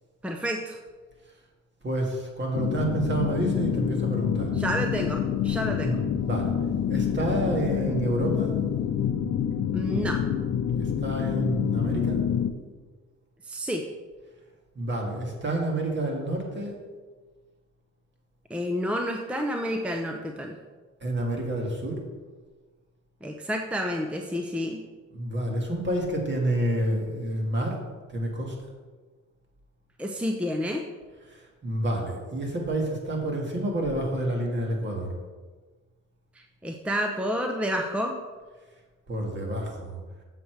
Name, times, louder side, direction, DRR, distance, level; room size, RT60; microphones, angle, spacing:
voice 1, 0.2-0.8 4.5-6.0 9.7-10.2 13.4-13.8 18.5-20.5 23.2-24.8 30.0-30.8 36.3-38.1, equal, 5° right, 3 dB, 0.6 m, -29 dB
voice 2, 1.8-4.5 5.8-6.0 6.2-6.5 6.9-8.5 10.8-12.2 14.8-16.8 21.0-22.0 25.1-27.8 28.1-28.5 31.3-35.1 39.1-40.0, right 1 dB, 35° right, 0 dB, 2.1 m, -29 dB
sound 1, 2.5-12.5, left 8 dB, 55° left, 0.6 m, -27 dB
7.0 x 6.5 x 4.6 m, 1.4 s
cardioid pair, 90°, 30 cm